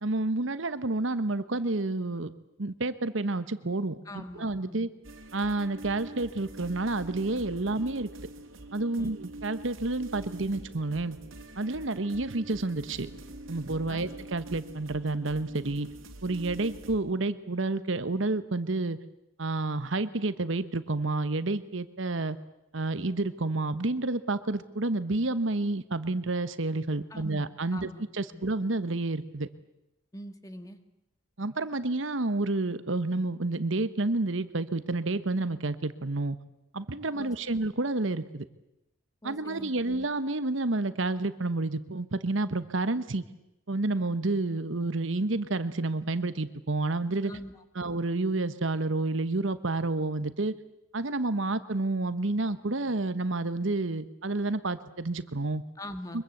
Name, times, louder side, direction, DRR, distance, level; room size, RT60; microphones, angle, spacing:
voice 1, 0.0-2.3 2.6-4.9 5.3-8.1 8.7-11.2 11.6-13.1 13.5-15.9 16.2-19.0 19.4-22.4 22.7-29.5 31.4-36.4 36.7-38.4 39.2-43.2 43.7-47.3 47.7-50.5 50.9-55.6 56.1-56.2, right 2 dB, 70° right, 13 dB, 1.2 m, -29 dB
voice 2, 4.1-4.9 9.0-9.1 13.9-14.1 27.1-27.4 27.7-28.0 28.3-28.5 30.1-30.8 37.1-37.6 39.2-40.1 47.2-47.6 55.8-56.2, left 1 dB, 15° left, 8 dB, 1.8 m, -43 dB
sound 1, 5.0-17.0, right 1 dB, 85° right, 2.8 m, -45 dB
24.0 x 22.5 x 8.0 m, 0.89 s
head